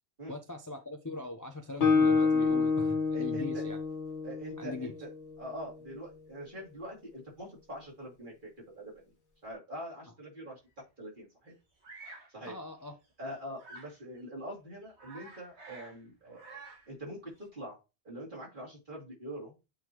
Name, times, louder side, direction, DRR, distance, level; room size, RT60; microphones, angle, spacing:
voice 1, 0.3-3.8 4.6-4.9 12.4-12.9, left 3 dB, 20° left, 0.6 m, -40 dB
Guitar, 1.8-5.5, left 4 dB, 75° left, 1.8 m, -28 dB
voice 2, 3.1-3.6 4.2-5.1 5.4-9.1 9.4-10.6 11.0-11.5 12.3-12.6 13.2-17.8 18.0-19.6, right 1 dB, 50° right, 2.9 m, -44 dB
Bird vocalization bird call bird song, 11.8-12.3 13.6-14.0 14.5-14.6 14.8-16.9, right 3 dB, 75° right, 2.2 m, -49 dB
8.4 x 3.8 x 3.0 m
omnidirectional pair, 1.1 m